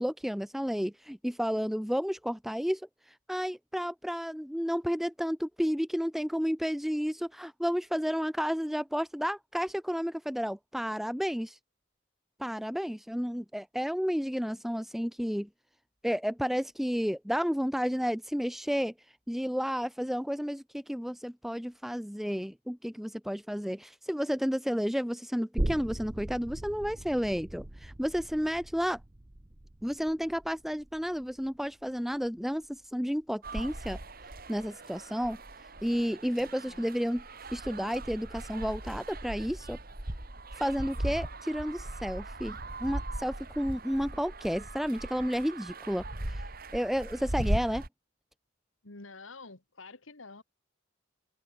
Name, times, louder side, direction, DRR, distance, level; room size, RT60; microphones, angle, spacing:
voice 1, 0.0-11.6 12.4-15.5 16.0-29.0 29.8-34.0 34.5-37.2 37.5-39.8 40.5-47.8, equal, ahead, 1.0 m, -32 dB
sound 1, 25.6-32.9 33.2-33.3, right 1 dB, 25° right, 0.9 m, -39 dB
sound 2, 33.4-47.9, right 1 dB, 45° right, 2.6 m, -38 dB
voice 2, 36.4-36.9 48.8-50.4, left 3 dB, 75° left, 2.0 m, -49 dB
head